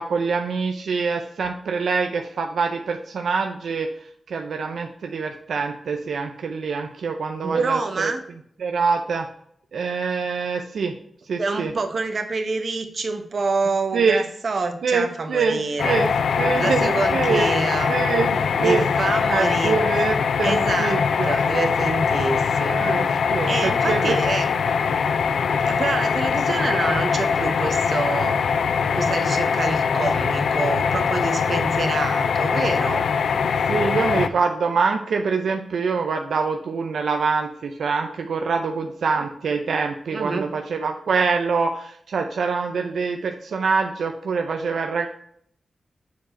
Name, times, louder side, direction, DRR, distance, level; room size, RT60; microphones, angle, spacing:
voice 1, 0.0-3.9 4.3-8.1 8.6-9.3 9.7-11.0 11.3-11.7 13.9-14.2 14.8-16.1 16.4-17.5 17.9-18.9 19.3-21.4 22.8-24.2 33.7-45.1, right 5 dB, 85° right, 4 dB, 0.6 m, -25 dB
voice 2, 7.4-8.2 11.4-16.1 16.6-17.9 18.6-19.8 20.4-21.0 21.2-23.2 23.5-24.5 24.8-25.0 25.6-28.4 28.9-33.1 40.1-40.5, right 3 dB, 60° right, 6 dB, 1.1 m, -27 dB
sound 1, 15.8-34.3, left 6 dB, 90° left, 0.4 m, -22 dB
7.2 x 4.8 x 4.4 m, 0.68 s
cardioid pair, 70°, 0 cm